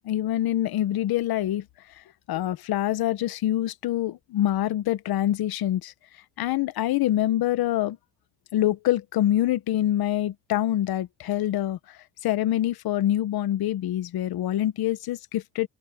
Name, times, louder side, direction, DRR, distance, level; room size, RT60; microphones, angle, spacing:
voice 1, 0.0-1.6 2.3-5.9 6.4-8.0 8.5-15.7, left 13 dB, 80° left, 1.1 m, -25 dB
open air
cardioid pair, 170°, 36 cm